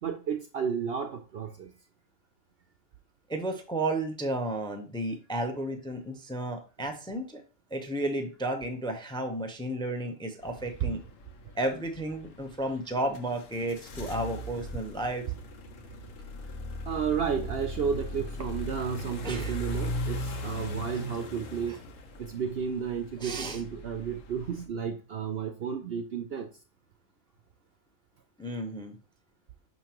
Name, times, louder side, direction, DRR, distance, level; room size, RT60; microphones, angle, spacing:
voice 1, 0.0-1.7 10.8-10.9 16.9-21.7 22.2-26.5, right 7 dB, 60° right, 7 dB, 0.7 m, -32 dB
voice 2, 3.3-7.4 7.7-11.0 11.6-15.2 19.2-19.6 21.7-21.8 23.2-23.6 28.4-29.0, right 1 dB, 5° left, 6 dB, 0.5 m, -33 dB
sound 1, 10.4-24.6, left 1 dB, 70° left, 1.2 m, -39 dB
5.8 x 5.5 x 2.9 m, 0.34 s
omnidirectional pair, 1.4 m